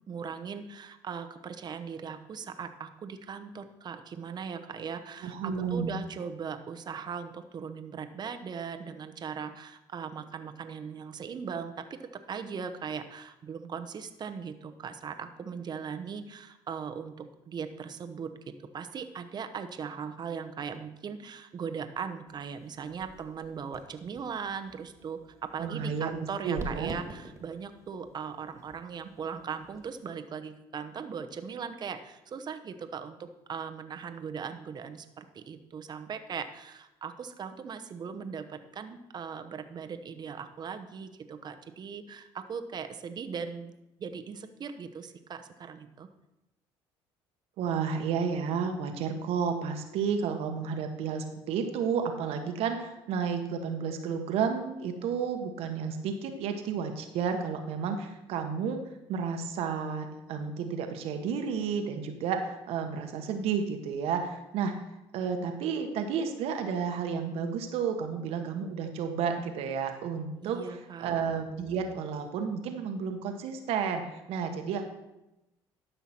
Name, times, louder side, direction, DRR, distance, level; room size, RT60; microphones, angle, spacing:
voice 1, 0.1-33.2 33.5-43.7 44.0-46.1 70.4-71.2, right 6 dB, 45° right, 8 dB, 0.9 m, -39 dB
voice 2, 5.2-6.0 25.6-26.1 26.4-26.9 47.6-58.8 59.1-64.7 65.1-70.6 71.0-74.9, right 6 dB, 75° right, 5 dB, 1.3 m, -31 dB
sound 1, 22.3-30.0, right 3 dB, 25° right, 1.9 m, -47 dB
12.5 x 5.7 x 4.4 m, 0.93 s
supercardioid pair, 85°, 10 cm